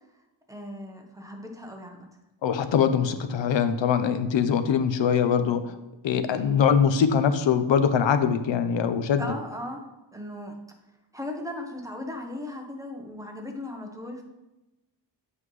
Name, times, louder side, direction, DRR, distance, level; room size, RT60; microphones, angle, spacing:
voice 1, 0.5-2.1 9.2-9.9 10.1-10.6 11.1-14.2, left 1 dB, 5° right, 2 dB, 0.9 m, -37 dB
voice 2, 2.4-5.6 6.0-9.2, left 7 dB, 75° left, 10 dB, 0.7 m, -22 dB
7.8 x 5.5 x 3.2 m, 1.0 s
wide cardioid pair, 125°, 46 cm